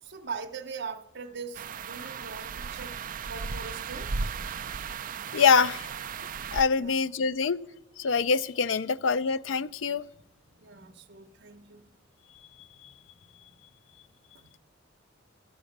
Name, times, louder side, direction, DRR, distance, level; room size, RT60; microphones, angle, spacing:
voice 1, 0.0-4.1 6.7-7.0 10.1-10.2 10.5-11.9 14.3-14.5, right 5 dB, 65° right, 0.8 m, -41 dB
sound 1, 1.5-6.6, right 5 dB, 45° right, 0.5 m, -36 dB
voice 2, 5.3-5.9 6.5-7.6 8.0-10.0, left 5 dB, 80° left, 0.5 m, -24 dB
14.5 x 10.0 x 6.5 m
head